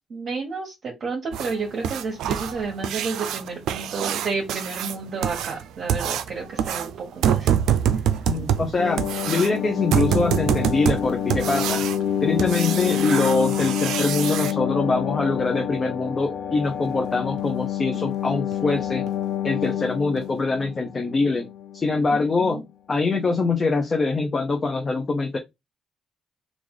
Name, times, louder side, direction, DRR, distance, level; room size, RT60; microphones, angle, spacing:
voice 1, 0.1-7.5 7.9-8.0 22.1-22.6, right 4 dB, 50° right, 1.1 m, -31 dB
sound 1, 1.3-14.5 16.8-16.9 17.4-17.5 17.9-18.0 18.5-18.6 19.1-19.2 19.6-19.7 20.2-20.3, right 9 dB, 85° right, 0.4 m, -26 dB
voice 2, 8.3-11.8 12.2-19.0 19.4-21.5 21.7-22.6 22.9-25.4, left 3 dB, 35° left, 0.6 m, -24 dB
sound 2, 8.8-21.8 22.1-22.2, left 10 dB, 75° left, 0.6 m, -28 dB
3.2 x 2.5 x 3.7 m
cardioid pair, 90°, 0 cm